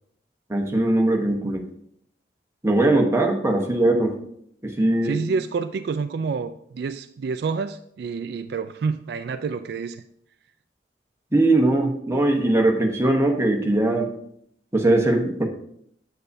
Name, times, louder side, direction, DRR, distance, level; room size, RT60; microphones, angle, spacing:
voice 1, 0.5-1.6 2.6-4.1 4.6-5.2 11.3-14.1 14.7-15.4, right 2 dB, 15° right, 2 dB, 1.0 m, -20 dB
voice 2, 5.0-10.0, right 5 dB, 60° right, 10 dB, 0.3 m, -28 dB
8.0 x 7.6 x 2.6 m, 0.69 s
head